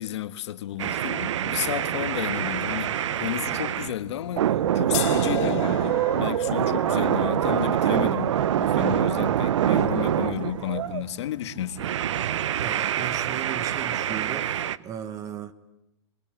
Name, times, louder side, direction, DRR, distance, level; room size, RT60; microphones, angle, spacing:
voice 1, 0.0-11.9, left 12 dB, 70° left, 1.6 m, -32 dB
Boat Water vehicle, 0.7-11.7, right 3 dB, 50° right, 6.7 m, -45 dB
sound 1, 0.8-4.0 4.4-11.0 11.8-14.8, right 10 dB, 85° right, 1.0 m, -25 dB
sound 2, 4.9-10.9, left 13 dB, 45° left, 3.7 m, -39 dB
voice 2, 12.6-14.5 14.8-15.5, right 9 dB, 25° right, 1.3 m, -36 dB
27.0 x 22.5 x 9.0 m
supercardioid pair, 155°, 15 cm